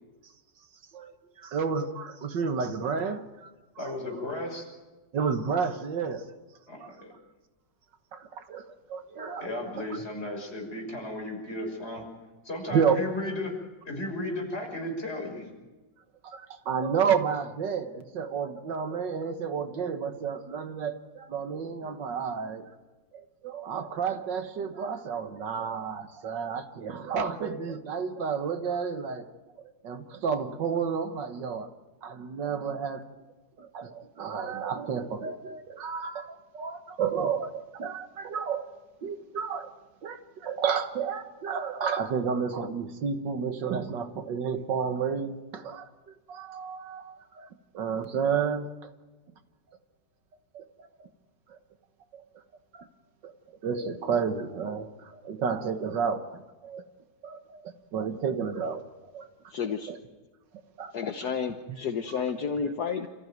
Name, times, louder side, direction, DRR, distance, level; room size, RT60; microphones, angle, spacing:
voice 1, 0.9-3.5 3.8-3.9 5.1-6.3 6.8-6.9 8.1-8.6 8.9-9.8 12.7-13.0 16.2-22.7 23.1-29.3 29.8-31.7 32.0-33.0 33.6-38.7 39.0-39.7 40.0-45.9 46.3-48.7 50.5-50.6 51.0-51.1 51.5-51.6 52.1-52.2 52.7-52.9 53.2-53.3 53.6-56.8 57.2-58.8 59.1-59.3 59.9-60.0 60.8-60.9, right 6 dB, 75° right, 8 dB, 1.9 m, -31 dB
voice 2, 3.8-4.6 6.7-7.1 9.4-12.0 12.4-13.5 13.8-15.5, left 1 dB, 35° left, 0 dB, 6.5 m, -34 dB
voice 3, 59.5-59.9 60.9-63.1, left 6 dB, 60° left, 6 dB, 1.5 m, -31 dB
28.0 x 15.0 x 9.3 m, 1.2 s
omnidirectional pair, 2.0 m